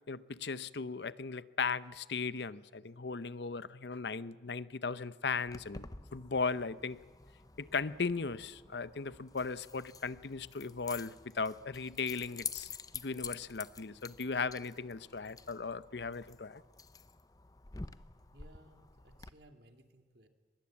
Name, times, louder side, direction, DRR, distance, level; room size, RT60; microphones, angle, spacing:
voice 1, 0.1-5.8 6.1-7.0 7.6-16.6, left 4 dB, 75° left, 0.7 m, -37 dB
Keys jangling, 5.5-19.3, left 5 dB, 20° left, 0.6 m, -49 dB
voice 2, 18.3-20.3, right 1 dB, 70° right, 2.3 m, -60 dB
23.5 x 21.0 x 8.6 m
head